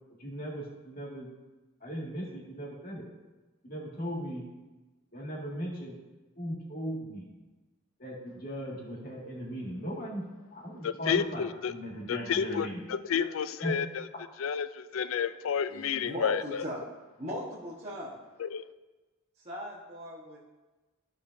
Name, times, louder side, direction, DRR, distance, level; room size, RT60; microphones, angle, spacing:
voice 1, 0.2-1.3 1.8-3.0 3.6-4.4 5.1-5.9 6.4-7.2 8.0-10.2 10.5-12.8 13.6-13.7, equal, 45° left, -4 dB, 2.1 m, -38 dB
voice 2, 10.8-11.7 12.1-14.1 14.4-16.7 18.4-18.6, left 7 dB, 65° left, 13 dB, 0.4 m, -31 dB
voice 3, 15.7-16.8 17.2-18.1 19.4-20.4, equal, 30° right, -7 dB, 1.3 m, -38 dB
14.5 x 5.1 x 2.7 m, 1.2 s
head